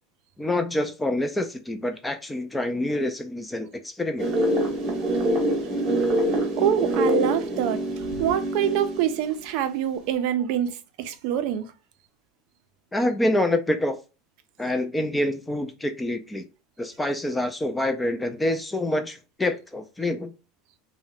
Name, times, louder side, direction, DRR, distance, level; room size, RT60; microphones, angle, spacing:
voice 1, 0.4-4.3 12.9-14.0 14.6-16.4 16.8-20.3, left 1 dB, 10° left, 0.3 m, -26 dB
sound 1, 4.2-9.1, right 1 dB, 35° right, 0.9 m, -25 dB
voice 2, 6.4-11.6, right 10 dB, 60° right, 0.4 m, -26 dB
2.7 x 2.1 x 3.5 m
supercardioid pair, 150°, 0 cm